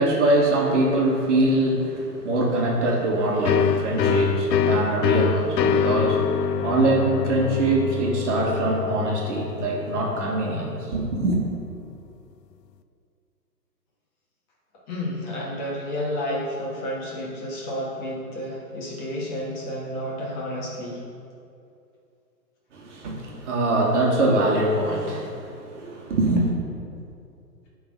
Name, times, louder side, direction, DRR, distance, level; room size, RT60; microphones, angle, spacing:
voice 1, 0.0-11.4 22.7-26.5, right 2 dB, 45° right, -2 dB, 1.6 m, -23 dB
sound 1, 3.4-10.9, left 7 dB, 75° left, 0.6 m, -25 dB
voice 2, 14.9-21.0, equal, 25° left, -5 dB, 1.7 m, -31 dB
10.5 x 3.9 x 5.4 m, 2.5 s
hypercardioid pair, 140°, 49 cm